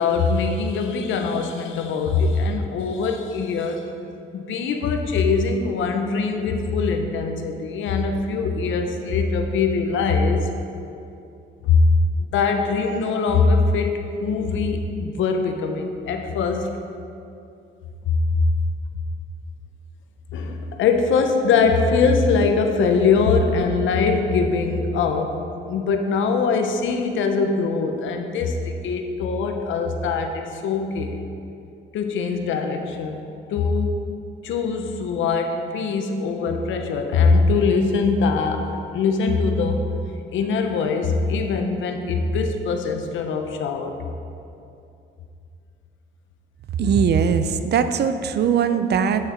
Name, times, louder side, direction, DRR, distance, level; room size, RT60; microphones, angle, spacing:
voice 1, 0.0-3.9 4.3-10.5 11.6-11.8 12.3-16.7 18.3-18.4 20.3-25.4 25.7-31.2 31.9-33.2 33.5-34.0 34.4-39.8 40.3-43.9 46.8-46.9, left 4 dB, 80° left, 5 dB, 0.9 m, -22 dB
voice 2, 46.8-49.3, right 7 dB, 55° right, 10 dB, 0.5 m, -20 dB
8.6 x 6.6 x 4.4 m, 2.6 s
cardioid pair, 90°, 20 cm